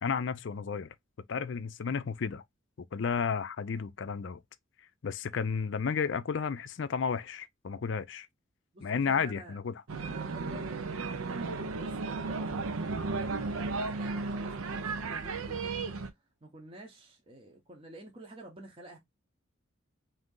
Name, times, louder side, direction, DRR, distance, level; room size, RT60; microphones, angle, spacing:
voice 1, 0.0-0.9 1.3-2.4 2.9-4.4 5.0-8.3 8.8-9.7, left 6 dB, 55° left, 0.4 m, -32 dB
voice 2, 8.7-9.6 10.1-12.7 13.2-19.0, right 1 dB, 25° right, 0.7 m, -50 dB
sound 1, 9.9-16.1, right 3 dB, 85° right, 0.6 m, -34 dB
3.7 x 2.7 x 3.7 m
head